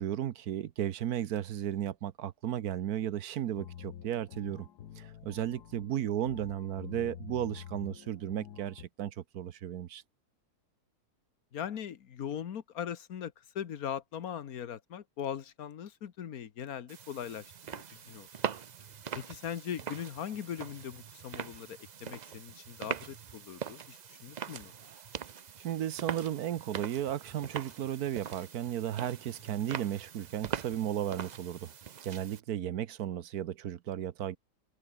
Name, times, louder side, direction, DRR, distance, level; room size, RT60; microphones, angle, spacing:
voice 1, 0.0-4.7 5.0-10.0 25.6-31.7 32.0-34.4, right 11 dB, 70° right, 1.3 m, -34 dB
sound 1, 3.6-8.8, left 9 dB, 80° left, 1.7 m, -48 dB
voice 2, 11.5-18.3 19.1-24.7, left 9 dB, 65° left, 1.6 m, -40 dB
sound 2, 16.9-32.4, right 7 dB, 85° right, 0.3 m, -42 dB
omnidirectional pair, 1.7 m